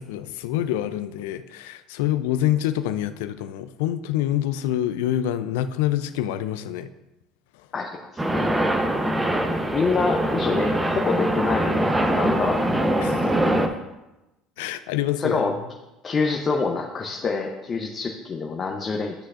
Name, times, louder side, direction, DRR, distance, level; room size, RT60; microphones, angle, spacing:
voice 1, 0.0-6.9 13.0-13.2 14.6-15.5, left 12 dB, 80° left, 12 dB, 0.4 m, -26 dB
voice 2, 7.7-8.6 9.3-9.4 9.7-12.9 15.2-15.5 16.0-19.1, left 4 dB, 35° left, 2 dB, 0.7 m, -26 dB
sound 1, 8.2-13.7, right 1 dB, 15° right, 0.8 m, -23 dB
9.9 x 6.2 x 2.5 m, 0.99 s
hypercardioid pair, 75°, 0 cm